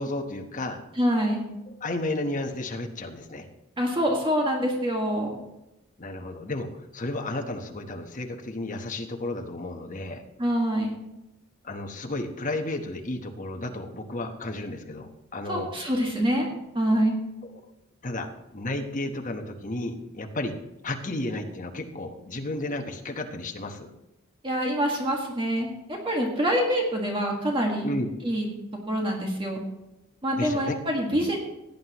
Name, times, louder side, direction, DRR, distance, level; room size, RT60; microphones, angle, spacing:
voice 1, 0.0-0.8 1.7-3.5 6.0-10.2 11.6-15.7 17.4-17.6 18.0-20.6 20.8-23.9 27.8-28.1 30.3-30.7 31.1-31.2, left 2 dB, 40° left, 4 dB, 1.1 m, -33 dB
voice 2, 1.0-1.4 3.8-5.3 10.4-10.9 15.5-16.5 16.7-17.2 24.4-27.9 28.2-28.5 28.9-29.6 30.2-31.4, equal, 25° right, 0 dB, 1.8 m, -25 dB
17.0 x 9.5 x 3.0 m, 0.92 s
head